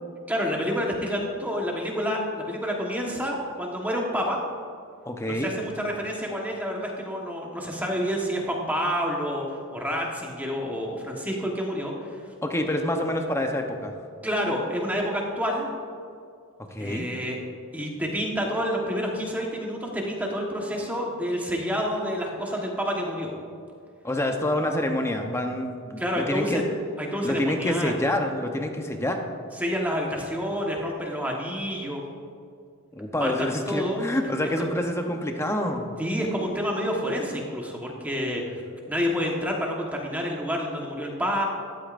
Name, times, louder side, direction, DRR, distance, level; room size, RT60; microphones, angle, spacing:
voice 1, 0.3-4.4 5.3-9.4 9.7-12.2 14.2-15.7 16.8-17.4 17.7-23.3 26.0-26.6 27.0-28.0 29.6-32.0 33.2-34.0 36.0-38.4 38.9-41.4, equal, 5° right, -1 dB, 1.3 m, -28 dB
voice 2, 5.0-5.5 12.4-13.9 16.6-17.1 24.0-26.6 27.2-29.2 32.9-35.9, left 1 dB, 10° left, 3 dB, 0.8 m, -27 dB
13.5 x 12.0 x 2.6 m, 2.3 s
head